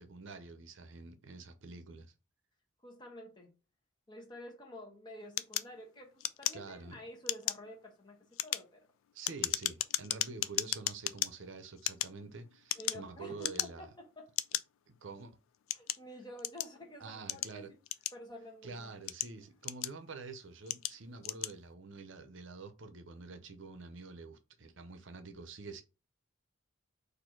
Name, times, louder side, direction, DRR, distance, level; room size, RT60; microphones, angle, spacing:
voice 1, 0.0-2.1 6.5-7.0 9.1-13.9 14.9-15.4 17.0-17.7 18.6-25.8, right 4 dB, 65° right, 0.7 m, -47 dB
voice 2, 2.8-3.5 4.1-8.9 12.8-14.3 15.7-17.8 18.1-18.9, left 1 dB, 20° left, 1.0 m, -50 dB
sound 1, 5.4-6.9 7.2-7.7 8.2-11.3 11.8-13.1 13.4-13.9 14.4-14.6 15.3-16.8 17.3-18.5 18.9-20.1 20.7-21.0 21.2-21.6, left 14 dB, 80° left, 0.3 m, -35 dB
4.3 x 2.6 x 4.5 m
head